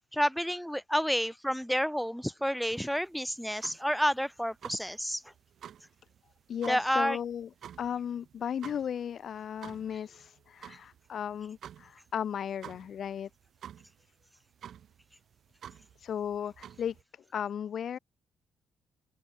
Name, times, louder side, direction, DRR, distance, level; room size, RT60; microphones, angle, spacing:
voice 1, 0.1-5.2 6.7-7.2, equal, ahead, 1.2 m, -30 dB
sound 1, 2.7-17.0, right 9 dB, 65° right, 5.5 m, -51 dB
voice 2, 6.5-7.5 7.8-13.3 16.0-17.0 17.3-18.0, left 8 dB, 60° left, 1.7 m, -35 dB
cardioid pair, 90°, 0 cm